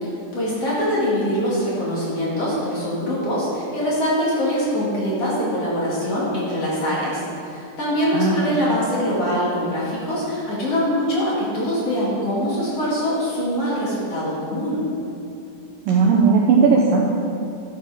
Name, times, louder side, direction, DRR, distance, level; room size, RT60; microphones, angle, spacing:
voice 1, 0.0-14.8, equal, 45° left, -7 dB, 2.7 m, -23 dB
voice 2, 15.9-17.0, right 5 dB, 75° right, -1 dB, 2.1 m, -16 dB
12.0 x 7.6 x 4.9 m, 2.8 s
omnidirectional pair, 4.8 m